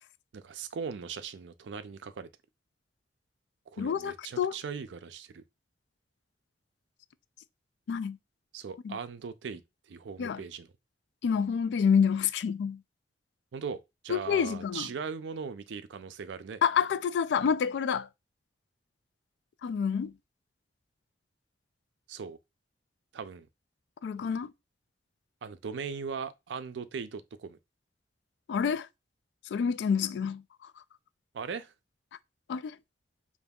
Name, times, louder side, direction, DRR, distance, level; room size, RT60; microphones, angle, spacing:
voice 1, 0.3-2.3 3.7-5.4 8.5-9.6 9.9-10.7 13.5-16.6 22.1-22.4 23.1-23.5 25.4-27.6 31.3-31.7, right 6 dB, 90° right, 0.4 m, -39 dB
voice 2, 3.8-4.5 7.9-8.2 8.8-9.0 10.2-10.4 11.2-12.8 14.1-14.9 16.6-18.1 19.6-20.1 24.0-24.5 28.5-28.9 29.5-30.4 32.5-32.8, left 7 dB, 70° left, 0.3 m, -28 dB
5.2 x 2.6 x 2.3 m
head